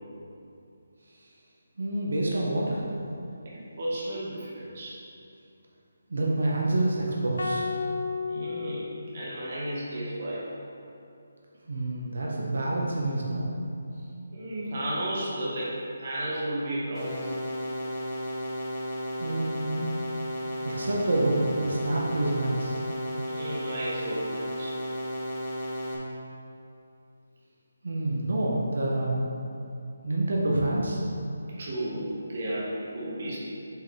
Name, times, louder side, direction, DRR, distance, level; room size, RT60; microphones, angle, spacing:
voice 1, 1.8-2.8 6.1-7.7 11.7-13.5 19.2-19.9 20.6-22.7 27.8-29.2 30.0-31.0, right 1 dB, 75° right, -4 dB, 1.0 m, -27 dB
voice 2, 3.4-5.0 8.3-10.5 13.9-14.1 14.3-17.2 23.3-24.7 31.6-33.4, right 1 dB, 35° right, -7 dB, 1.5 m, -33 dB
sound 1, 7.4-9.7, left 4 dB, 80° left, 0.7 m, -33 dB
sound 2, 16.9-25.9, equal, 15° left, 0.9 m, -34 dB
7.7 x 4.8 x 3.3 m, 2.6 s
hypercardioid pair, 175°, 0 cm